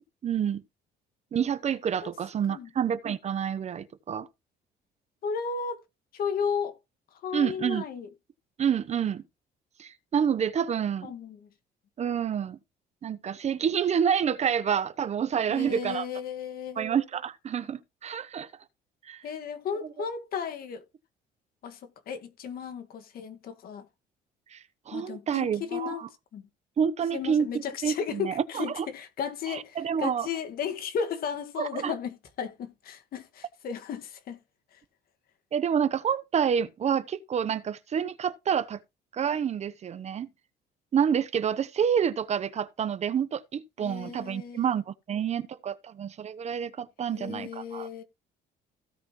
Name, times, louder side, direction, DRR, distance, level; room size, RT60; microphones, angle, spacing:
voice 1, 0.2-0.6 1.3-4.3 7.3-7.9 8.6-9.2 9.8-11.1 12.0-12.6 13.0-16.1 16.8-18.5 19.0-19.2 24.5-26.1 26.8-28.9 29.5-30.3 31.6-31.9 35.5-38.8 39.1-40.3 40.9-47.9, right 8 dB, 40° right, 0.8 m, -28 dB
voice 2, 5.2-5.8 6.1-6.8 7.2-8.1 11.0-11.5 15.5-16.8 19.2-20.8 21.6-21.8 22.1-23.8 24.9-26.4 27.1-34.4 34.7-34.8 43.8-44.7 47.1-48.0, left 6 dB, 60° left, 1.7 m, -34 dB
16.0 x 5.4 x 3.0 m
cardioid pair, 110°, 17 cm